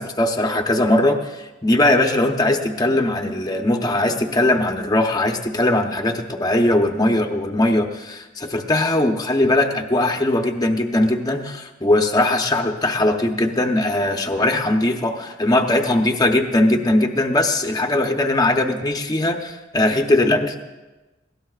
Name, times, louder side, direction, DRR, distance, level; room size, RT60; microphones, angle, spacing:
voice 1, 0.0-20.6, left 1 dB, 20° left, 3 dB, 0.8 m, -20 dB
20.5 x 16.5 x 2.4 m, 1.1 s
head